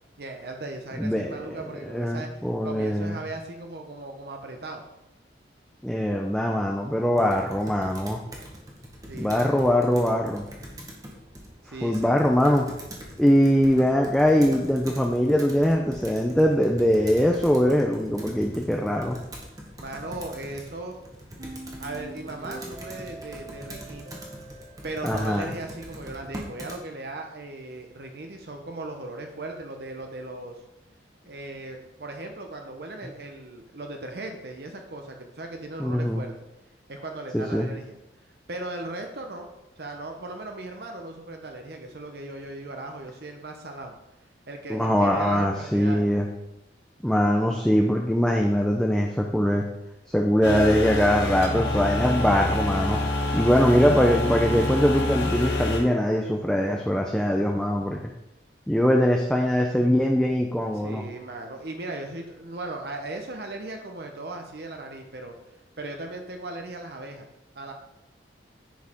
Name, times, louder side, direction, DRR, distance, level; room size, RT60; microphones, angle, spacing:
voice 1, 0.2-4.8 9.0-9.8 11.6-12.2 19.8-21.0 21.8-24.2 24.8-30.5 31.2-36.3 36.9-38.0 38.5-39.5 39.8-43.9 44.5-46.1 60.8-65.3 65.8-67.3 67.6-67.7, right 2 dB, 60° right, 3 dB, 0.8 m, -37 dB
voice 2, 1.0-1.4 1.9-3.1 5.8-8.2 9.1-10.4 11.8-12.7 13.2-19.2 25.0-25.5 35.8-36.2 37.3-37.7 44.7-46.3 47.0-49.6 50.1-53.0 53.3-58.1 58.7-61.0, equal, 5° left, 0 dB, 0.5 m, -22 dB
Computer keyboard, 7.1-26.8, equal, 20° right, 1.2 m, -43 dB
sound 1, 21.4-26.4, right 2 dB, 85° right, 2.7 m, -45 dB
sound 2, 50.4-55.8, left 1 dB, 75° left, 1.5 m, -27 dB
10.5 x 4.7 x 3.7 m, 0.91 s
head